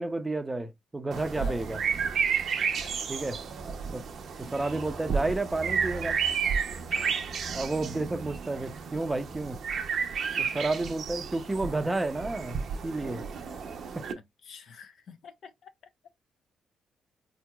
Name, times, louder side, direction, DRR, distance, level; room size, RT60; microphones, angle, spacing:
voice 1, 0.0-1.8 3.1-3.4 3.9-4.0 4.4-6.2 7.5-9.6 10.4-13.3 13.9-14.1, right 2 dB, 15° right, 0.5 m, -31 dB
sound 1, 1.1-14.1, right 6 dB, 60° right, 0.6 m, -32 dB
voice 2, 2.6-2.9 6.9-7.2 14.2-15.7, left 6 dB, 65° left, 0.6 m, -49 dB
4.3 x 2.9 x 2.3 m
cardioid pair, 90°, 0 cm